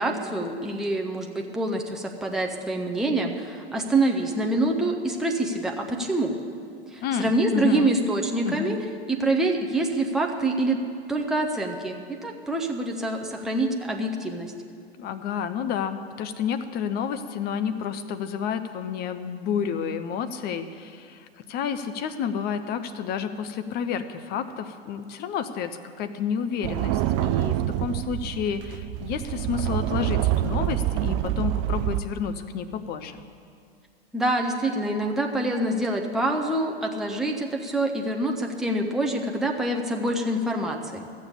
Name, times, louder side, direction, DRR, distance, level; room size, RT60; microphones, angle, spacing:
voice 1, 0.0-6.4 6.9-8.8 9.1-10.8 11.1-14.5 34.1-41.0, right 2 dB, ahead, 1 dB, 0.9 m, -26 dB
voice 2, 7.0-8.0 8.4-8.9 15.0-33.2, left 7 dB, 30° left, 10 dB, 0.7 m, -30 dB
sound 1, 26.6-32.0, right 13 dB, 30° right, 0.4 m, -26 dB
14.0 x 7.4 x 8.3 m, 2.3 s
hypercardioid pair, 100°, 32 cm